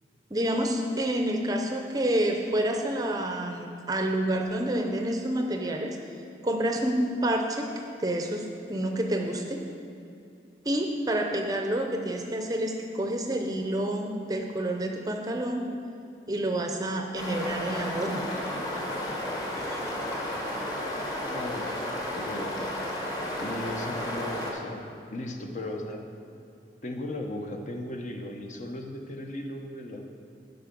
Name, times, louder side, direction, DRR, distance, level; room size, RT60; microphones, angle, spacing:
voice 1, 0.3-6.0 6.4-7.7 8.0-9.6 10.6-15.6 16.3-18.3 19.6-19.8, right 1 dB, 20° right, 3 dB, 0.6 m, -28 dB
sound 1, 17.2-24.5, left 1 dB, 20° left, 1.2 m, -33 dB
voice 2, 21.3-21.7 22.1-22.7 23.4-24.8 25.1-26.0 26.8-30.0, left 1 dB, 40° left, 3 dB, 0.8 m, -36 dB
12.0 x 5.4 x 5.2 m, 2.6 s
head